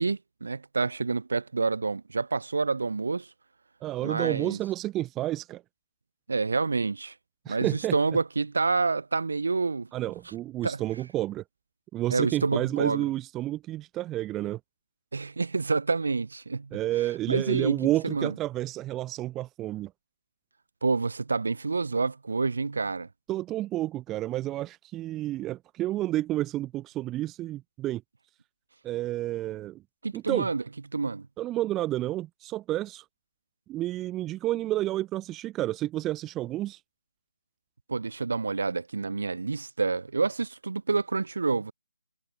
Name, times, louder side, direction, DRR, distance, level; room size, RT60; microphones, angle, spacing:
voice 1, 0.0-3.3 4.0-4.6 6.3-7.1 7.5-9.9 10.6-10.8 12.1-13.0 15.1-16.7 17.3-18.3 20.8-23.1 30.0-30.6 30.9-31.3 37.9-41.7, right 4 dB, 70° right, 7.6 m, -28 dB
voice 2, 3.8-5.6 7.4-7.9 9.9-11.4 11.9-14.6 16.7-19.9 23.3-28.0 28.8-29.8 30.1-30.5 31.4-33.0 33.7-36.8, right 15 dB, 10° right, 2.8 m, -30 dB
figure-of-eight pair, 160°, 0 cm